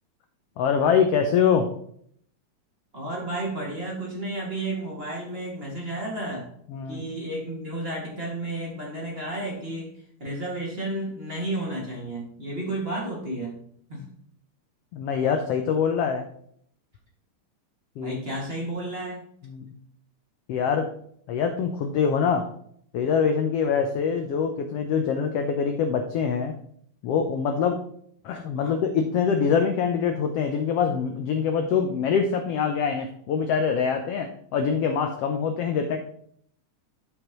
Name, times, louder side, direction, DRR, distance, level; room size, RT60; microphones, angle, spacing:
voice 1, 0.6-1.7 6.7-7.0 14.9-16.2 18.0-18.2 19.4-19.7 20.5-20.9 21.3-22.4 22.9-26.5 27.0-27.8 28.2-36.0, left 6 dB, 85° left, 5 dB, 1.3 m, -24 dB
voice 2, 2.9-6.5 6.9-9.9 10.2-13.6 13.9-14.1 18.0-19.3 28.5-28.8, right 1 dB, 20° right, -3 dB, 1.8 m, -32 dB
13.0 x 5.3 x 3.0 m, 0.65 s
omnidirectional pair, 3.6 m